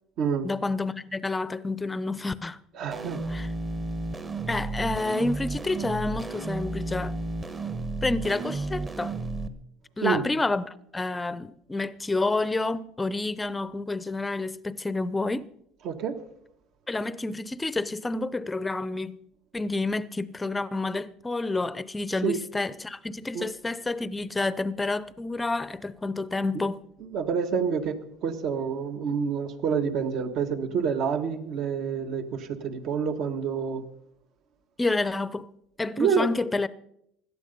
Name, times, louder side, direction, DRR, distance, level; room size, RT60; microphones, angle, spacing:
voice 1, 0.4-2.6 3.3-3.5 4.5-7.2 8.0-9.2 10.0-15.5 16.9-19.2 19.5-26.8 34.8-35.5 35.8-36.7, left 2 dB, 15° left, 0.6 m, -29 dB
voice 2, 2.7-3.2 10.0-10.3 15.8-16.2 22.2-22.4 23.3-23.5 27.0-28.0 28.2-33.8 36.0-36.3, right 6 dB, 55° right, 1.5 m, -27 dB
sound 1, 2.9-9.5, right 2 dB, 25° right, 1.2 m, -32 dB
17.0 x 12.0 x 5.4 m
cardioid pair, 125°, 0 cm